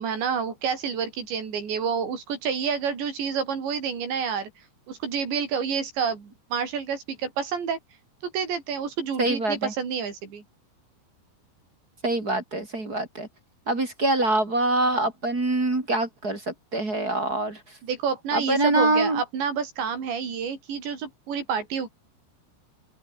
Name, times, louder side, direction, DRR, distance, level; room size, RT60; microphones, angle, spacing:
voice 1, 0.0-4.5 4.9-7.8 8.2-10.4 17.8-21.9, right 6 dB, 80° right, 7.2 m, -29 dB
voice 2, 9.2-9.7 12.0-13.3 13.7-17.6 18.3-19.2, right 2 dB, 20° right, 3.8 m, -24 dB
open air
omnidirectional pair, 5.0 m